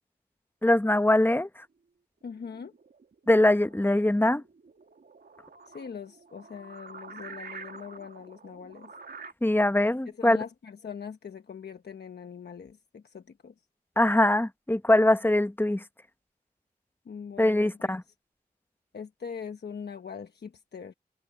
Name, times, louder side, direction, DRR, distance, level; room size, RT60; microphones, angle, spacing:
voice 1, 0.6-1.5 3.3-4.4 9.4-10.4 14.0-15.8 17.4-18.0, left 1 dB, 10° left, 1.1 m, -22 dB
voice 2, 2.2-2.7 5.7-8.9 10.2-13.5 17.0-18.0 18.9-20.9, left 6 dB, 85° left, 1.1 m, -42 dB
sound 1, 2.3-9.3, right 4 dB, 75° right, 2.4 m, -48 dB
cardioid pair, 40°, 16 cm